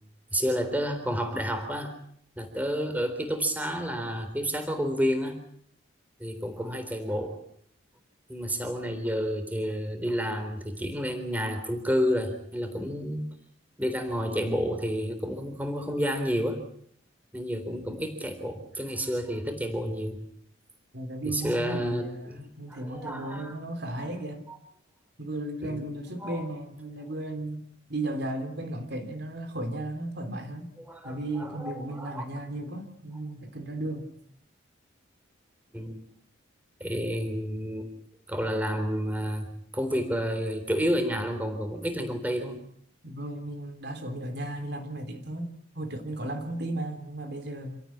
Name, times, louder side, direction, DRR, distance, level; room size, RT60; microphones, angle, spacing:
voice 1, 0.3-1.9 2.4-5.4 6.2-7.4 8.3-13.3 13.8-16.6 17.3-20.2 21.2-23.6 24.5-24.6 25.6-25.8 26.2-26.4 30.9-32.2 35.7-36.0 36.8-37.9 38.3-39.5 39.7-42.6, equal, 10° right, 7 dB, 3.7 m, -30 dB
voice 2, 20.9-24.5 25.2-27.6 27.9-30.7 31.0-34.1 43.0-47.8, right 1 dB, 55° right, 6 dB, 3.5 m, -35 dB
28.0 x 17.0 x 8.8 m, 0.65 s
head